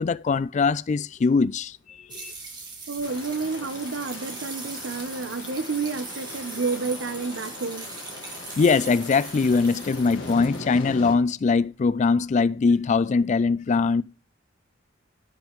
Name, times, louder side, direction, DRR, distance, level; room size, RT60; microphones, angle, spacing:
voice 1, 0.0-2.3 8.6-14.0, left 4 dB, 35° left, 0.3 m, -22 dB
sound 1, 2.1-10.6, right 4 dB, 20° right, 1.9 m, -40 dB
voice 2, 2.9-7.9, right 4 dB, 65° right, 0.8 m, -30 dB
sound 2, 3.0-11.1, left 2 dB, 70° left, 1.6 m, -40 dB
15.5 x 5.4 x 3.1 m
head